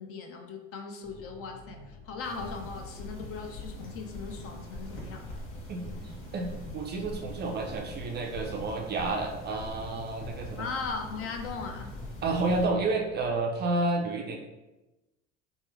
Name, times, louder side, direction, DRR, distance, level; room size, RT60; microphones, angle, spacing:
voice 1, 0.0-5.3 10.6-11.9, left 5 dB, 40° left, 4 dB, 0.5 m, -38 dB
sound 1, 1.0-13.4, left 1 dB, 80° left, 1.0 m, -49 dB
sound 2, 2.2-12.7, left 1 dB, 55° left, 1.1 m, -43 dB
voice 2, 5.7-6.0 6.3-10.7 12.2-14.4, right 3 dB, 30° right, 2 dB, 0.4 m, -30 dB
3.0 x 2.2 x 3.3 m, 1.0 s
hypercardioid pair, 85°, 37 cm